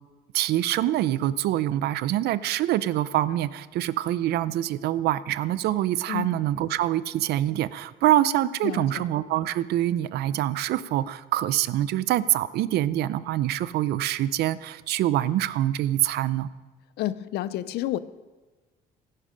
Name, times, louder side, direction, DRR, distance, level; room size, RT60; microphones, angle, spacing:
voice 1, 0.3-16.5, right 13 dB, 75° right, 17 dB, 0.5 m, -25 dB
voice 2, 8.6-9.0 17.0-18.0, left 13 dB, 75° left, 16 dB, 0.6 m, -30 dB
16.5 x 9.9 x 5.1 m, 1.3 s
cardioid pair, 110°, 17 cm